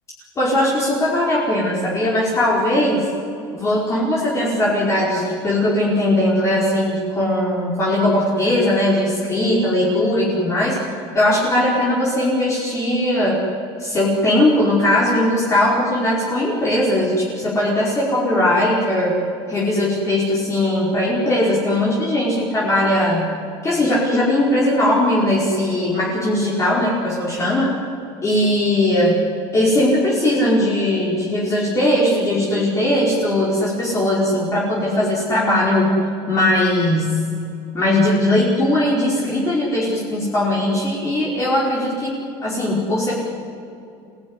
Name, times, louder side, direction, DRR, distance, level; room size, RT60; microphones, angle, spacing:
voice 1, 0.4-3.1 3.5-10.8 11.1-13.4 13.8-19.2 19.5-23.3 23.6-27.7 28.2-29.2 29.5-35.9 36.3-37.2 37.7-42.1 42.4-43.2, left 1 dB, 25° left, -5 dB, 5.0 m, -19 dB
26.0 x 17.5 x 9.9 m, 2.6 s
cardioid pair, 130°, 13 cm